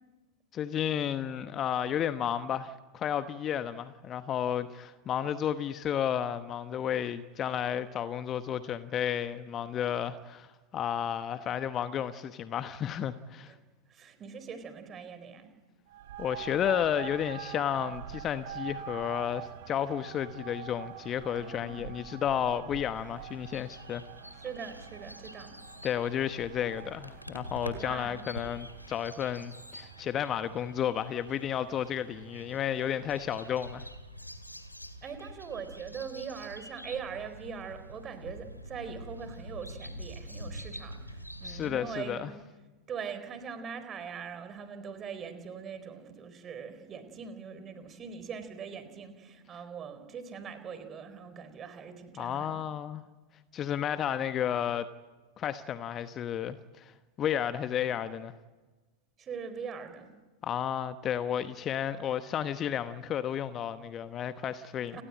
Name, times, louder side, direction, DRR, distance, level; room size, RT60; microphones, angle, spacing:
voice 1, 0.5-13.5 16.2-24.0 25.8-33.9 41.4-42.3 52.2-53.0 53.5-54.9 55.4-56.9 57.2-58.3 60.4-65.0, left 9 dB, 30° left, 1.0 m, -32 dB
voice 2, 13.9-15.5 21.3-21.9 24.4-25.5 27.7-28.2 35.0-42.3 42.9-52.7 59.2-60.1 64.9-65.0, right 6 dB, 25° right, 4.3 m, -42 dB
sound 1, 15.9-33.8, right 10 dB, 55° right, 3.1 m, -46 dB
sound 2, 22.9-41.7, equal, 90° left, 2.2 m, -46 dB
29.5 x 20.0 x 8.9 m
figure-of-eight pair, 90°, 0 cm